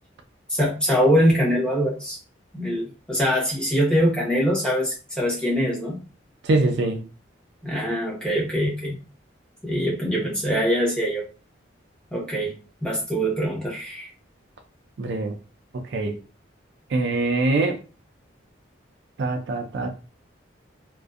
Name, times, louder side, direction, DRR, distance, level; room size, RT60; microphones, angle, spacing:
voice 1, 0.5-2.2 2.5-6.0 7.6-9.0 9.6-11.2 12.1-12.6 12.8-14.1, equal, 5° left, 0.8 m, -23 dB
voice 2, 6.4-7.0 15.0-15.3 15.7-16.2 16.9-17.8 19.2-19.9, right 2 dB, 60° right, 0.3 m, -23 dB
2.5 x 2.1 x 2.3 m
head